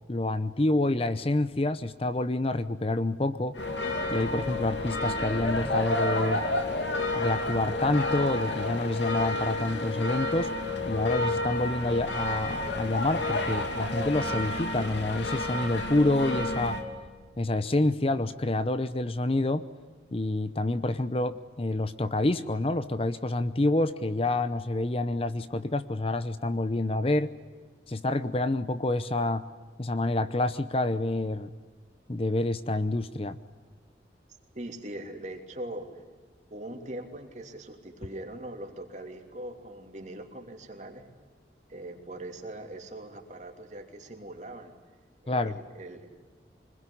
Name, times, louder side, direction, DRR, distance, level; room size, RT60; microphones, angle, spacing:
voice 1, 0.1-3.5 4.1-6.4 7.1-10.5 10.8-16.8 17.4-19.6 20.1-27.3 27.9-29.5 29.8-31.5 32.1-33.4 45.3-45.6, left 2 dB, 30° left, 13 dB, 0.7 m, -28 dB
sound 1, 3.5-16.8, left 2 dB, 75° left, 3.0 m, -30 dB
voice 2, 34.5-36.0 36.5-41.1 41.7-44.7 45.2-46.1, right 1 dB, 40° right, 4 dB, 3.1 m, -41 dB
25.5 x 21.0 x 10.0 m, 1.5 s
head